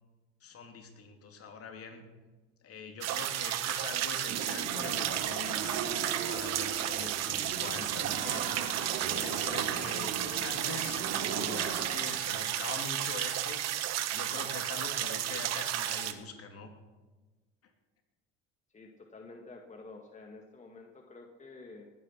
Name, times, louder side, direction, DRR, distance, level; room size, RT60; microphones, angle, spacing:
voice 1, 0.4-2.0 2.6-8.5 9.0-13.6 14.1-16.7, left 4 dB, 45° left, 4 dB, 2.9 m, -43 dB
sound 1, 3.0-16.1, right 12 dB, 55° right, 1.3 m, -33 dB
sound 2, 4.3-11.9, right 6 dB, 75° right, 2.6 m, -39 dB
voice 2, 18.7-21.9, left 3 dB, 25° left, 2 dB, 1.9 m, -50 dB
19.0 x 9.4 x 5.7 m, 1.2 s
supercardioid pair, 80°, 31 cm